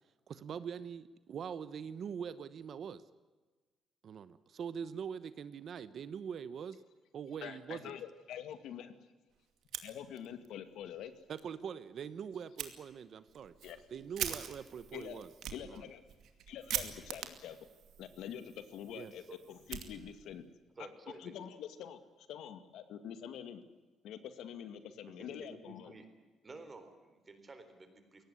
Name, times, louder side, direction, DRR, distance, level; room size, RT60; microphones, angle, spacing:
voice 1, 0.3-3.0 4.0-6.8 7.1-8.0 11.3-13.5 13.9-15.3 15.6-15.9 18.9-19.1, right 7 dB, 50° right, 14 dB, 1.0 m, -43 dB
voice 2, 7.4-9.0 9.8-11.1 13.6-13.8 14.9-15.2 15.5-16.0 16.5-17.6 18.0-19.2 19.5-20.4 21.2-23.6 24.0-25.9, left 9 dB, 90° left, 10 dB, 2.1 m, -46 dB
Fire, 9.6-10.5 10.8-10.9 11.3-11.4 12.6-12.7 13.3-20.4, right 10 dB, 70° right, 2.4 m, -43 dB
voice 3, 20.8-21.4 25.1-26.1 26.4-28.2, right 3 dB, 25° right, 9 dB, 3.8 m, -52 dB
22.5 x 18.5 x 9.7 m, 1.3 s
cardioid pair, 160°, 0 cm